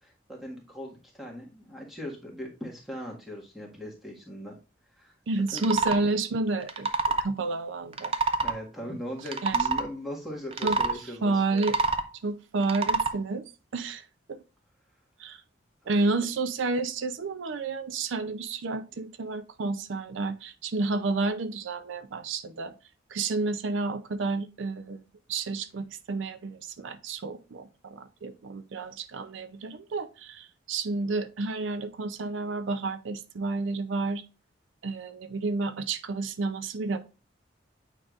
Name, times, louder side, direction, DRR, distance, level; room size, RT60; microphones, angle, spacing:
voice 1, 0.0-4.5 5.0-5.1 5.5-5.7 8.4-11.6 16.0-16.2, equal, ahead, 1.6 m, -39 dB
voice 2, 5.3-6.9 7.2-8.1 9.4-9.6 10.6-10.8 11.2-11.8 12.2-13.4 13.7-14.0 14.3-14.4 15.2-15.4 15.9-22.7 23.1-25.0 25.3-34.2 34.8-37.0, right 3 dB, 75° right, 0.5 m, -30 dB
sound 1, 5.5-6.0 6.6-7.3 7.9-8.6 9.2-9.9 10.5-10.9 11.5-12.1 12.6-13.1, right 4 dB, 30° right, 0.5 m, -26 dB
8.6 x 4.8 x 2.4 m
head